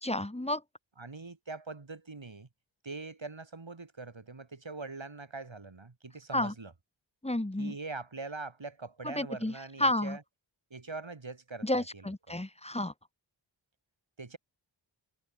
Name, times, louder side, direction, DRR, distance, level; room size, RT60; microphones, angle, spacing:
voice 1, 0.0-0.6 6.3-6.5 7.2-7.7 9.0-9.5 9.8-10.2 11.6-12.9, left 1 dB, 15° left, 1.1 m, -31 dB
voice 2, 1.0-2.5 2.8-6.7 7.6-10.2 10.7-12.4 14.2-14.4, right 3 dB, 70° right, 4.7 m, -43 dB
wide cardioid pair, 50°, 48 cm